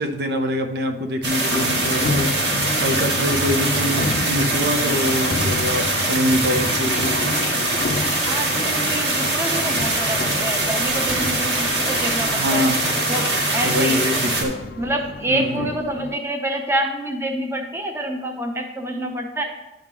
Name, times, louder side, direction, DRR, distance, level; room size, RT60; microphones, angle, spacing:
voice 1, 0.0-7.3 12.3-12.9 13.6-14.7 15.3-15.7, equal, 60° right, 7 dB, 0.6 m, -24 dB
sound 1, 1.2-14.4, right 2 dB, 75° right, 1.9 m, -22 dB
sound 2, 1.5-16.1, left 3 dB, 55° left, 0.5 m, -30 dB
voice 2, 8.2-12.7 13.1-14.1 14.8-19.4, right 1 dB, 15° right, 3 dB, 0.7 m, -27 dB
10.0 x 3.6 x 6.0 m, 1.0 s
head